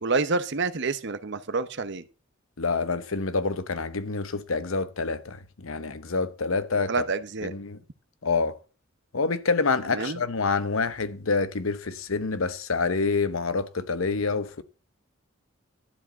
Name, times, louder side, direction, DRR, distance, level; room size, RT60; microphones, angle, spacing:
voice 1, 0.0-2.0 6.9-7.5 9.9-10.2, right 4 dB, 60° right, 0.9 m, -28 dB
voice 2, 2.6-7.0 7.4-7.8 8.2-8.6 9.1-14.6, left 4 dB, 85° left, 0.9 m, -27 dB
12.0 x 5.0 x 8.0 m
head